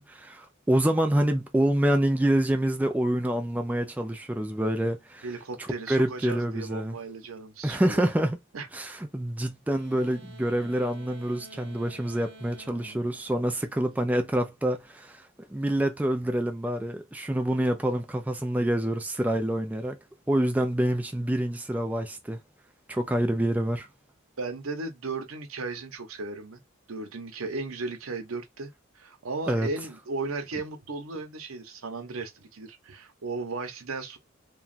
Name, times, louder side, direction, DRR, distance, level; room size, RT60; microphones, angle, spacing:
voice 1, 0.0-5.3 5.9-7.0 7.6-8.4 8.7-15.2 15.5-20.0 20.3-22.4 22.9-23.9 29.5-29.7, right 1 dB, 10° right, 0.4 m, -26 dB
voice 2, 5.2-8.0 8.5-8.7 9.9-10.1 12.7-13.0 24.4-26.6 26.9-34.2, right 3 dB, 90° right, 0.8 m, -36 dB
sound 1, 9.7-14.1, right 1 dB, 60° right, 0.9 m, -51 dB
3.0 x 2.3 x 2.4 m
head